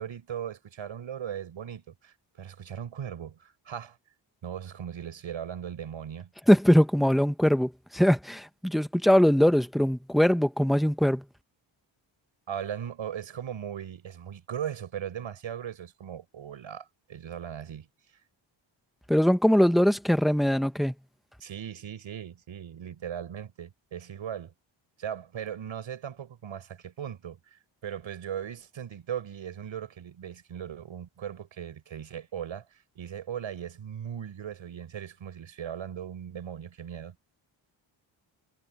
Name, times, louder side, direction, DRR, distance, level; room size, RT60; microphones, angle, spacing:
voice 1, 0.0-4.0 4.4-6.3 12.5-17.9 21.4-24.5 25.0-37.2, right 9 dB, 75° right, 6.0 m, -38 dB
voice 2, 6.5-11.2 19.1-20.9, equal, ahead, 0.8 m, -22 dB
wide cardioid pair, 170°, 48 cm